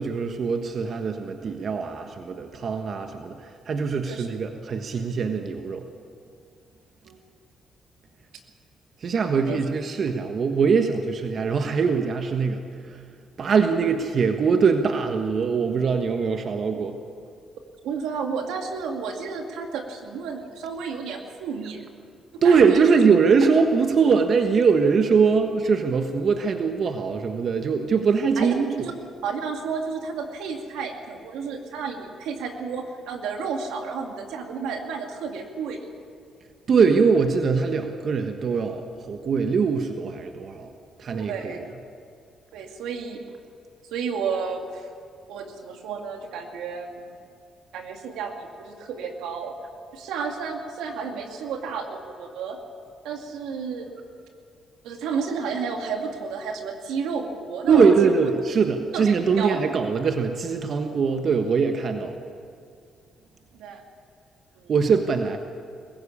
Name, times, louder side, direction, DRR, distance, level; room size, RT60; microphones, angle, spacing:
voice 1, 0.0-5.8 9.0-12.6 13.4-17.0 22.4-28.7 36.7-40.7 41.0-41.6 57.7-62.2 64.7-65.4, right 5 dB, 55° right, 5 dB, 1.3 m, -22 dB
voice 2, 17.8-21.8 22.4-23.0 28.4-28.9 29.2-35.9 41.1-41.7 42.5-43.2 43.9-44.9 45.3-47.2 47.7-49.5 49.9-52.6 53.0-53.9 54.8-58.1 58.9-59.6 63.5-63.8 64.6-64.7, right 5 dB, 90° right, 3 dB, 2.4 m, -32 dB
22.0 x 15.5 x 8.6 m, 2.4 s
cardioid pair, 85°, 0 cm